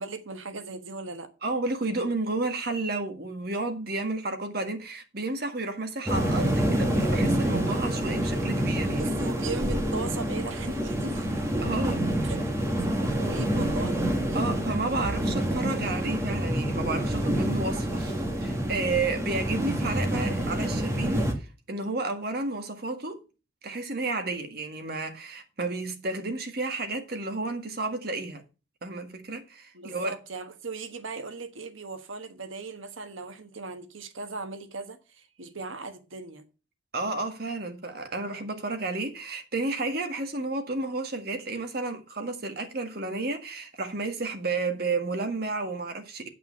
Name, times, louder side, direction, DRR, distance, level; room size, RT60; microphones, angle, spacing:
voice 1, 0.0-1.3 8.9-11.3 12.2-12.4 13.1-14.9 29.7-36.4, right 3 dB, 85° right, 1.3 m, -38 dB
voice 2, 1.4-9.1 11.6-12.3 14.3-23.2 23.6-28.4 28.8-30.1 36.9-46.3, right 3 dB, 50° right, 1.7 m, -31 dB
sound 1, 6.1-21.3, right 1 dB, 15° right, 1.8 m, -27 dB
8.9 x 5.8 x 6.8 m
head